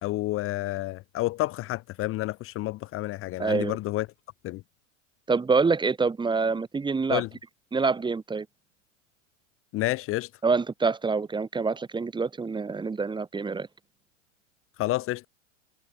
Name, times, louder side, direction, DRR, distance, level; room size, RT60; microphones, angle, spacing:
voice 1, 0.0-4.1 4.4-4.6 7.1-7.3 9.7-10.3 14.8-15.3, left 18 dB, 35° left, 1.0 m, -29 dB
voice 2, 3.4-3.8 5.3-7.2 7.7-8.4 10.4-13.7, right 4 dB, 10° right, 1.8 m, -26 dB
hypercardioid pair, 115°, 38 cm